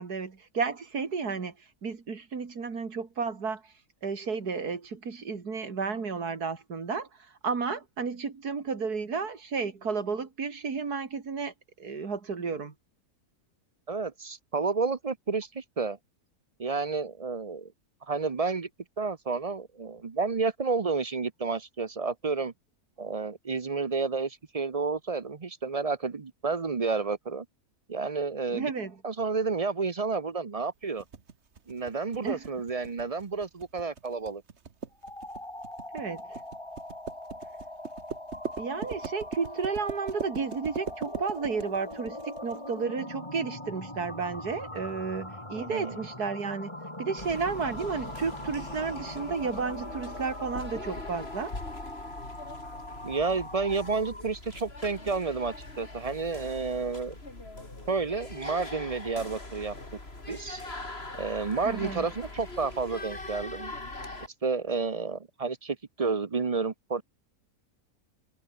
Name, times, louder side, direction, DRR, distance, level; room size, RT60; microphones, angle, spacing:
voice 1, 0.0-1.5 1.8-3.6 4.0-7.1 7.4-11.5 11.8-12.7 28.5-28.9 32.2-32.5 35.9-36.4 38.6-46.7 47.0-51.5 61.6-62.1, right 5 dB, 90° right, 3.0 m, -32 dB
voice 2, 13.9-16.0 16.6-17.7 18.1-18.7 19.0-22.5 23.0-27.5 27.9-28.7 29.0-31.0 31.7-34.4 45.5-46.0 53.0-57.1 57.9-59.8 60.3-60.6 61.2-63.7 64.4-67.0, right 4 dB, 30° right, 0.7 m, -30 dB
sound 1, 31.0-42.6, right 5 dB, 50° right, 1.7 m, -40 dB
sound 2, 34.9-54.3, left 1 dB, 20° left, 4.0 m, -41 dB
sound 3, 47.2-64.3, left 2 dB, 40° left, 4.3 m, -42 dB
omnidirectional pair, 1.6 m